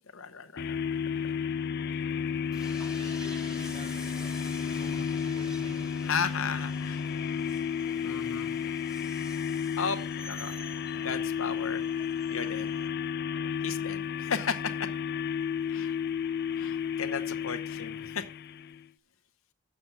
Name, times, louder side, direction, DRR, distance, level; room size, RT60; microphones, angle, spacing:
voice 1, 0.1-1.0 6.0-7.1 8.0-8.5 9.8-10.0 10.3-10.6 11.0-11.8 12.3-12.7 13.6-14.9 15.7-15.9 16.5-18.3, left 6 dB, 75° left, 7 dB, 0.9 m, -34 dB
sound 1, 0.6-18.8, left 7 dB, 50° left, 0.4 m, -32 dB
Train, 2.5-12.9, equal, 5° right, 1.6 m, -48 dB
voice 2, 2.8-5.9, equal, 30° right, 2 dB, 4.2 m, -48 dB
7.5 x 6.8 x 6.9 m, 0.38 s
head